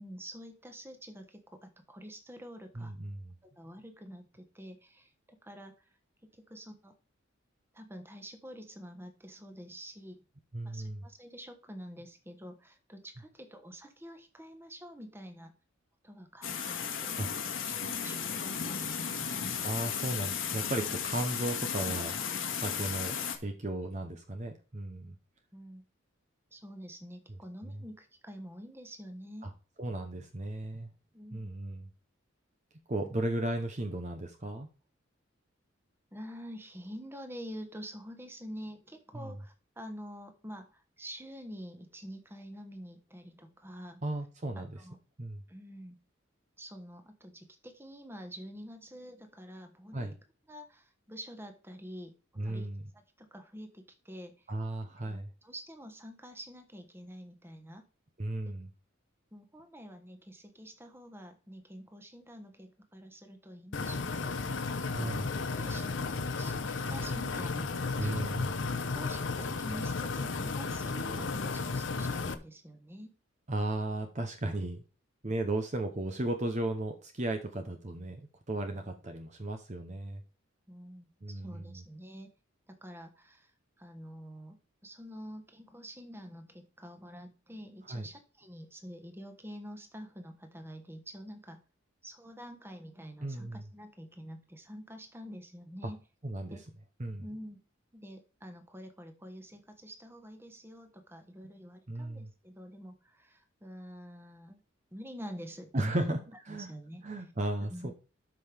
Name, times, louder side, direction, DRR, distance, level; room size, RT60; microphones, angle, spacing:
voice 1, 0.0-2.9 3.4-5.7 6.2-6.9 7.7-10.2 10.6-15.5 16.0-17.2 17.6-19.5 25.5-25.8 26.5-29.5 31.1-31.5 33.0-33.3 36.1-44.0 44.5-45.0 45.5-46.0 46.6-50.2 50.5-52.2 52.4-52.7 52.9-54.5 55.0-57.8 59.3-64.5 65.0-65.1 65.5-68.3 68.7-73.1 80.7-82.3 82.7-83.5 83.8-91.6 92.0-96.0 96.5-96.6 97.2-97.6 97.9-104.6 104.9-106.1 106.5-107.1 107.7-107.9, equal, 10° right, 6 dB, 1.2 m, -47 dB
voice 2, 2.8-3.4 10.5-11.0 17.2-17.3 19.6-22.2 22.5-23.2 23.4-25.2 29.4-29.5 29.8-30.9 31.3-31.8 32.9-34.7 39.1-39.3 44.0-44.8 45.2-45.4 49.9-50.1 52.4-52.8 54.5-55.3 58.2-58.7 64.8-65.3 68.0-68.5 73.5-74.8 75.2-78.2 78.5-80.2 81.2-81.8 87.9-88.1 93.2-93.6 96.2-96.6 97.0-97.2 101.9-102.3 105.7-106.7 107.0-107.9, right 1 dB, 35° right, 5 dB, 0.8 m, -35 dB
sound 1, 16.4-23.4, left 7 dB, 85° left, 1.7 m, -35 dB
sound 2, 63.7-72.3, left 4 dB, 65° left, 0.9 m, -34 dB
12.5 x 5.6 x 3.5 m, 0.35 s
head